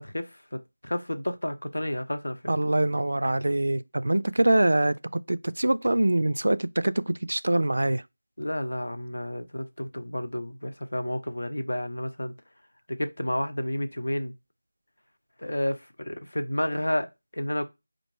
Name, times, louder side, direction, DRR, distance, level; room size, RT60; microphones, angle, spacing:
voice 1, 0.0-2.5 8.4-12.3 12.9-14.3 15.4-17.1 17.3-17.6, left 1 dB, 75° left, 0.8 m, -31 dB
voice 2, 2.5-8.0, right 1 dB, 70° right, 0.3 m, -24 dB
4.4 x 2.5 x 4.5 m
figure-of-eight pair, 170°, 0 cm